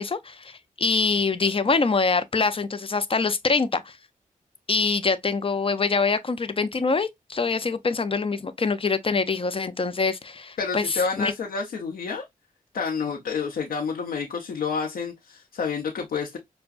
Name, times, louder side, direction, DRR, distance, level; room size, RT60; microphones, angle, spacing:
voice 1, 0.0-3.9 4.7-11.3, left 4 dB, 40° left, 0.5 m, -24 dB
voice 2, 10.6-12.2 12.7-16.4, left 5 dB, 80° left, 0.8 m, -29 dB
5.8 x 2.2 x 2.5 m
cardioid pair, 55°, 15 cm